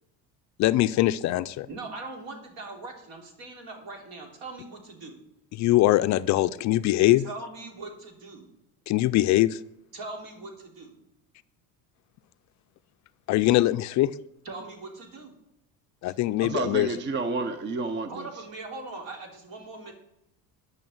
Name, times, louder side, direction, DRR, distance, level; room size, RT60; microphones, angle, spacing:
voice 1, 0.6-1.7 5.5-7.2 8.9-9.6 13.3-14.1 16.0-16.9, left 16 dB, 45° left, 12 dB, 0.4 m, -22 dB
voice 2, 1.7-5.2 7.2-8.5 9.9-10.9 14.4-15.3 18.1-19.9, right 3 dB, 65° right, 3 dB, 3.1 m, -41 dB
voice 3, 16.4-18.2, right 3 dB, 30° right, 10 dB, 0.7 m, -30 dB
11.0 x 6.3 x 7.7 m, 0.85 s
cardioid pair, 145°, 39 cm